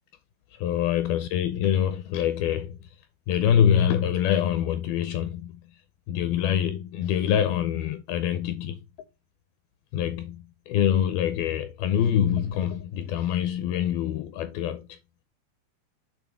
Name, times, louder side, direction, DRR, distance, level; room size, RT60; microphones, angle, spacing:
voice 1, 0.5-2.9 3.3-5.6 6.1-8.8 9.9-15.0, left 9 dB, 85° left, 2.2 m, -25 dB
8.2 x 3.5 x 4.5 m
omnidirectional pair, 4.8 m